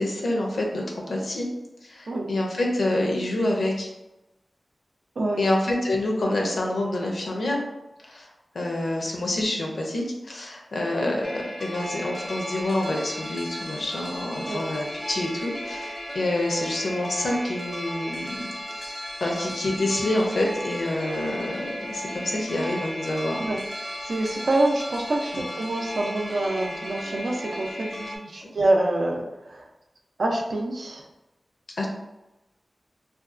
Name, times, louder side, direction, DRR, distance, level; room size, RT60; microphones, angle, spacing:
voice 1, 0.0-1.5 1.8-3.9 5.4-7.6 8.1-8.3 8.5-18.5 18.8-23.4 25.3-25.5 28.4-28.5 31.8-31.9, left 1 dB, 85° left, 0 dB, 0.5 m, -27 dB
voice 2, 5.2-5.5 14.4-14.6 23.4-23.6 24.1-29.6 30.2-31.0, right 2 dB, 80° right, 0 dB, 0.4 m, -26 dB
sound 1, 11.2-28.2, equal, 25° left, 0.4 m, -35 dB
2.7 x 2.3 x 2.4 m, 0.98 s
wide cardioid pair, 75°, 0 cm